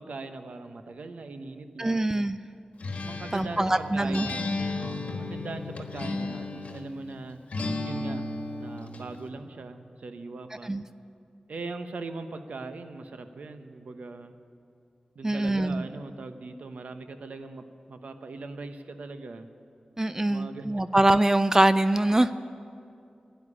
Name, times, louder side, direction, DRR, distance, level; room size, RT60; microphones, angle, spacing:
voice 1, 0.0-2.2 3.0-7.4 7.8-8.2 8.6-10.7 11.5-14.3 15.1-19.5 20.3-20.7, right 3 dB, 80° right, 8 dB, 0.9 m, -40 dB
voice 2, 1.8-2.4 3.3-4.3 10.6-10.8 15.2-15.8 20.0-22.4, right 1 dB, 20° right, 12 dB, 0.4 m, -23 dB
Acoustic guitar, 2.8-6.9 7.5-9.1, left 2 dB, 75° left, 1.4 m, -34 dB
12.5 x 10.5 x 9.9 m, 2.5 s
cardioid pair, 55°, 2 cm